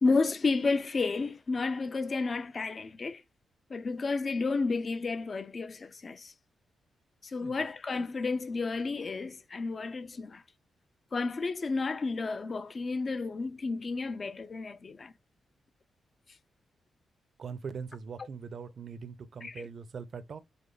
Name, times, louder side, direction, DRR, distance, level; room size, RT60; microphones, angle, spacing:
voice 1, 0.0-3.2 3.7-6.3 7.2-10.4 11.1-15.1 19.4-19.7, left 3 dB, 35° left, 0.5 m, -31 dB
voice 2, 17.4-20.4, right 5 dB, 55° right, 0.6 m, -41 dB
5.2 x 2.0 x 3.9 m
cardioid pair, 110°, 0 cm